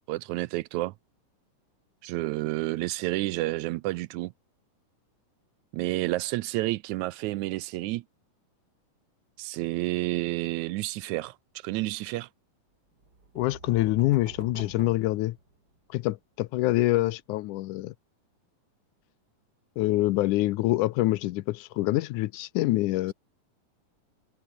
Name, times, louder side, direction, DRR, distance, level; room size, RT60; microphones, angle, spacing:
voice 1, 0.1-0.9 2.0-4.3 5.7-8.0 9.4-12.3, right 19 dB, 80° right, 1.8 m, -30 dB
sound 1, 13.0-15.9, right 3 dB, 30° right, 4.8 m, -47 dB
voice 2, 13.4-15.4 15.9-17.9 19.8-23.1, left 17 dB, 85° left, 2.1 m, -26 dB
omnidirectional pair, 3.6 m